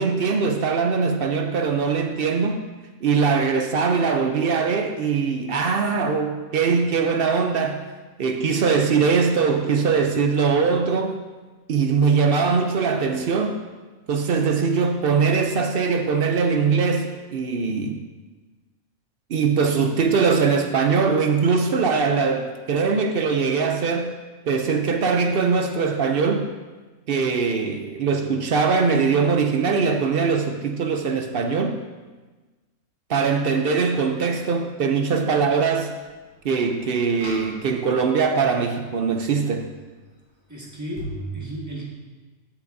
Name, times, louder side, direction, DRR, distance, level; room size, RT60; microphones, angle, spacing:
voice 1, 0.0-2.7 3.0-7.9 8.2-11.2 11.7-13.6 14.1-18.0 19.3-24.1 24.5-26.5 27.1-31.8 33.1-35.9 36.4-39.7, right 5 dB, 60° right, 5 dB, 0.6 m, -21 dB
sound 1, 36.0-36.1 37.1-38.1 41.0-41.3, equal, 30° right, 2.3 m, -36 dB
voice 2, 40.5-41.9, right 1 dB, 10° right, -4 dB, 1.5 m, -34 dB
13.0 x 5.9 x 2.6 m, 1.3 s
omnidirectional pair, 1.5 m